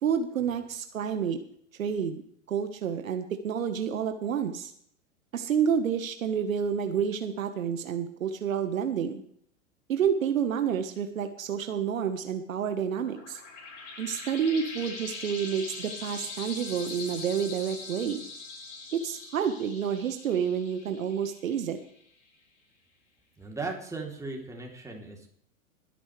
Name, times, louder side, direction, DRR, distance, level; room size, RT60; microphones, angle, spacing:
voice 1, 0.0-1.4 1.8-2.2 2.5-4.7 5.3-9.2 9.9-13.4 14.0-18.3 18.9-21.8, right 7 dB, 75° right, 8 dB, 1.5 m, -29 dB
sound 1, 12.9-22.0, left 3 dB, 60° left, 5.7 m, -42 dB
voice 2, 23.4-25.3, right 3 dB, 10° right, 0 dB, 3.4 m, -37 dB
21.0 x 10.0 x 3.4 m, 0.63 s
hypercardioid pair, 100°, 41 cm